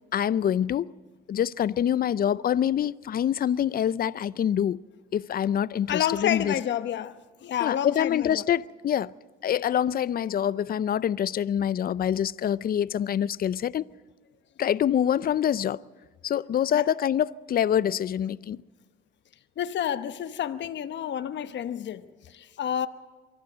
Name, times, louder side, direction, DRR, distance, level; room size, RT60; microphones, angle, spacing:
voice 1, 0.1-0.9 1.3-4.8 5.1-6.5 7.6-9.1 9.4-13.9 14.6-15.8 16.2-18.6, left 9 dB, 50° left, 0.5 m, -25 dB
voice 2, 5.9-7.1 7.4-8.4 16.7-16.8 19.6-22.9, left 10 dB, 65° left, 1.0 m, -29 dB
24.0 x 14.0 x 7.9 m
cardioid pair, 90°, 20 cm